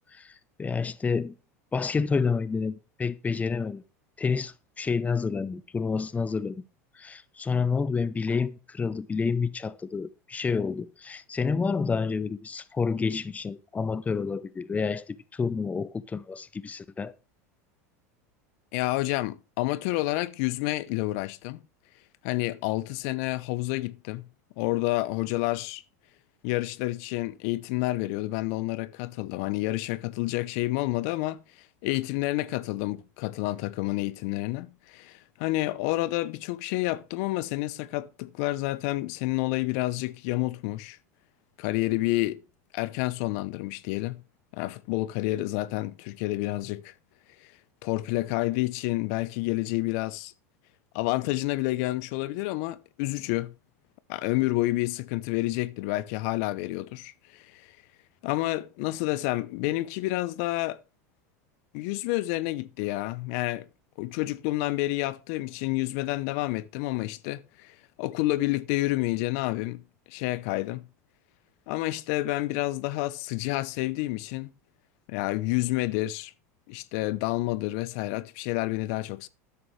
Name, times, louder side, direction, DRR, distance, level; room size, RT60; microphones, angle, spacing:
voice 1, 0.1-1.4 1.7-3.8 4.2-6.6 6.9-17.1, left 5 dB, 15° left, 0.8 m, -29 dB
voice 2, 18.7-21.6 22.2-24.2 24.6-25.8 26.4-31.4 31.8-41.0 41.6-42.4 42.7-44.2 44.5-46.9 47.4-47.5 47.8-50.3 50.9-53.5 54.1-57.7 58.2-60.8 61.7-63.7 64.0-69.8 70.1-70.8 71.7-74.5 75.1-76.3 76.7-79.3, left 18 dB, 65° left, 0.8 m, -29 dB
13.0 x 10.0 x 3.3 m
hypercardioid pair, 105°, 9 cm